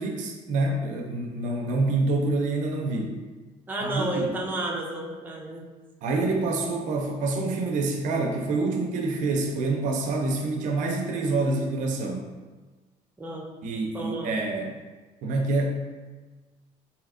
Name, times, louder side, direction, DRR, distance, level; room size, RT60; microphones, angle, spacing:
voice 1, 0.0-3.1 3.8-4.3 6.0-12.2 13.6-14.7 15.2-15.8, right 2 dB, 70° right, 2 dB, 0.5 m, -27 dB
voice 2, 3.7-5.6 13.2-13.5 13.9-14.3, right 1 dB, 15° right, -2 dB, 0.6 m, -31 dB
4.1 x 2.7 x 2.5 m, 1.3 s
cardioid pair, 120°, 13 cm